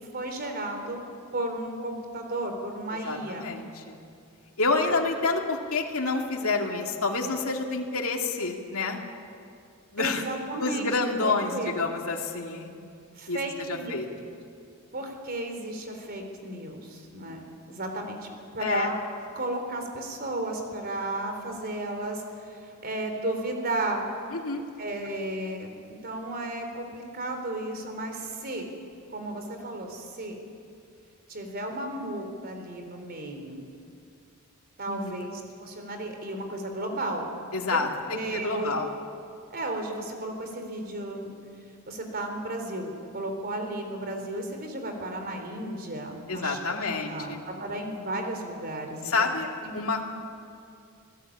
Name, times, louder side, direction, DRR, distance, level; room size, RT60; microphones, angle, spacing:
voice 1, 0.1-1.0 1.3-3.5 10.0-10.9 11.2-11.7 13.2-14.2 14.9-18.3 18.5-19.0 19.3-24.1 24.8-25.7 26.0-28.7 29.1-30.4 31.3-33.7 34.8-37.3 37.7-37.8 38.1-38.7 39.5-41.4 41.9-49.3 49.6-49.7, right 1 dB, 45° right, 4 dB, 3.9 m, -34 dB
voice 2, 2.9-4.0 4.6-9.0 9.9-10.2 10.6-12.7 13.3-13.4 13.7-14.1 18.6-18.9 24.3-24.6 34.9-35.3 37.5-38.9 46.3-47.4 49.0-49.5 49.7-50.1, left 3 dB, 70° left, 1 dB, 2.5 m, -28 dB
27.0 x 17.5 x 8.7 m, 2.4 s
head